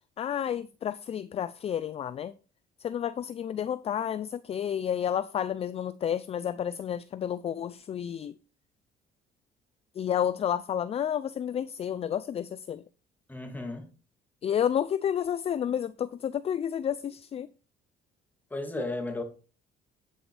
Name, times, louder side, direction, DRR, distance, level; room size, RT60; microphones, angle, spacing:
voice 1, 0.2-2.3 2.8-8.3 10.0-12.8 14.4-17.5, left 9 dB, 35° left, 0.4 m, -30 dB
voice 2, 13.3-13.9 18.5-19.2, left 2 dB, 10° left, 2.5 m, -34 dB
9.9 x 8.6 x 3.3 m
cardioid pair, 110°, 17 cm